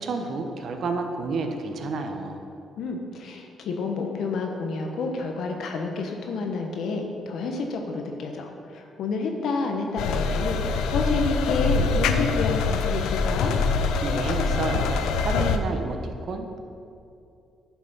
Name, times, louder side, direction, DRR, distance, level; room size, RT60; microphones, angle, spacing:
voice 1, 0.0-2.4 14.0-16.6, right 3 dB, 60° right, 5 dB, 1.1 m, -30 dB
voice 2, 2.8-13.5, left 3 dB, 70° left, 3 dB, 1.1 m, -29 dB
sound 1, 10.0-15.6, left 4 dB, 90° left, 0.6 m, -24 dB
10.5 x 6.0 x 5.6 m, 2.5 s
cardioid pair, 90°, 0 cm